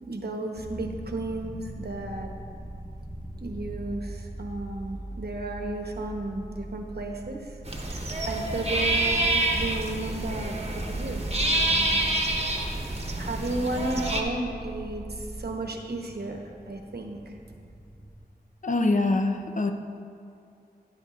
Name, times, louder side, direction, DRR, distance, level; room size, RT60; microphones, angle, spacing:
voice 1, 0.0-2.3 3.4-7.6 7.8-12.0 13.2-17.2, right 2 dB, 75° right, 3 dB, 1.0 m, -34 dB
sound 1, 0.5-18.2, equal, 20° left, 1.2 m, -45 dB
sound 2, 1.0-15.5, right 1 dB, 15° right, 0.8 m, -43 dB
sound 3, 7.7-14.2, right 2 dB, 40° right, 1.0 m, -27 dB
voice 2, 18.6-19.7, left 2 dB, 50° left, 5 dB, 0.7 m, -24 dB
12.5 x 10.5 x 2.5 m, 2.4 s
wide cardioid pair, 75°, 17 cm